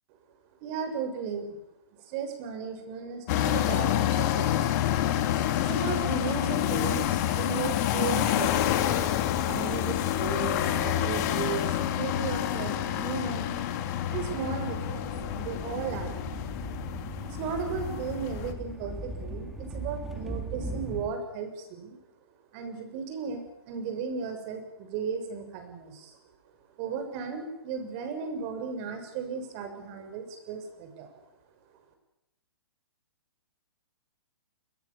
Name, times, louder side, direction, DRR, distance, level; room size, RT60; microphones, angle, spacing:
voice 1, 0.6-1.6 2.0-4.8 5.5-8.7 9.5-13.6 14.1-16.2 17.2-22.0 22.5-26.2 26.8-31.1, right 6 dB, 35° right, 6 dB, 6.7 m, -35 dB
sound 1, 3.3-18.5, left 11 dB, 40° left, 3.1 m, -28 dB
sound 2, 14.1-21.1, right 1 dB, ahead, 3.3 m, -39 dB
29.0 x 21.5 x 7.3 m, 0.87 s
hypercardioid pair, 145°, 13 cm